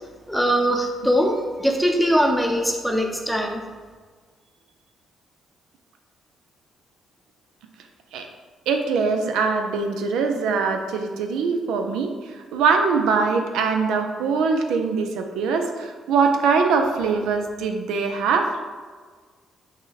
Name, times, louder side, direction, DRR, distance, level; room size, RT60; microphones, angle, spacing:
voice 1, 0.3-3.6, equal, ahead, 2 dB, 0.6 m, -21 dB
voice 2, 8.7-18.5, right 5 dB, 90° right, 5 dB, 0.4 m, -22 dB
6.1 x 2.2 x 4.0 m, 1.5 s
cardioid pair, 90°, 0 cm